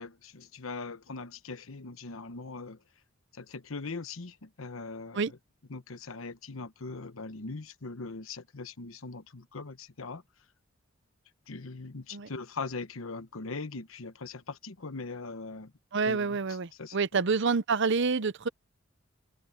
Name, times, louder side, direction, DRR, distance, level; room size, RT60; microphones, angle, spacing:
voice 1, 0.0-2.8 3.3-5.4 5.7-10.2 11.5-15.7 16.0-16.4 16.8-17.2, left 3 dB, 80° left, 1.1 m, -41 dB
voice 2, 15.9-18.5, right 4 dB, 60° right, 0.7 m, -28 dB
head